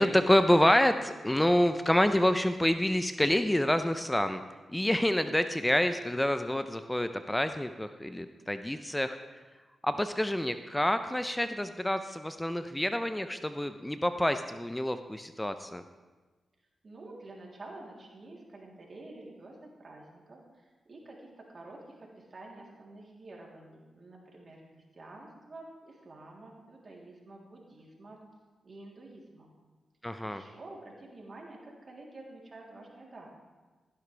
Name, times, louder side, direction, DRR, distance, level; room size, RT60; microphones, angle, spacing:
voice 1, 0.0-4.4 4.7-9.2 9.8-15.8 30.0-30.4, left 1 dB, 10° left, 9 dB, 0.7 m, -27 dB
voice 2, 16.8-28.2 28.6-29.5 30.2-33.3, right 2 dB, 50° right, -2 dB, 3.4 m, -49 dB
15.5 x 11.0 x 3.4 m, 1.3 s
supercardioid pair, 40°, 0 cm